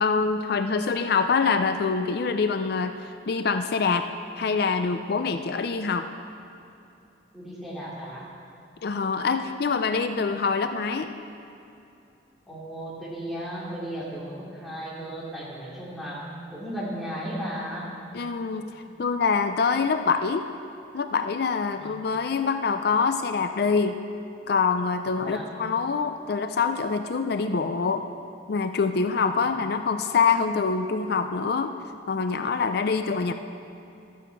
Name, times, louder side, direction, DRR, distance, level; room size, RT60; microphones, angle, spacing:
voice 1, 0.0-4.1 4.4-6.1 8.8-11.1 18.1-18.7 19.0-20.5 20.9-24.0 24.5-28.0 28.5-31.7 32.1-33.3, left 5 dB, 55° left, 8 dB, 0.4 m, -25 dB
voice 2, 7.3-8.3 12.5-17.9 18.8-18.9 21.7-21.9 25.1-25.4 29.4-29.5, equal, ahead, -9 dB, 2.6 m, -35 dB
12.5 x 8.3 x 4.6 m, 2.7 s
head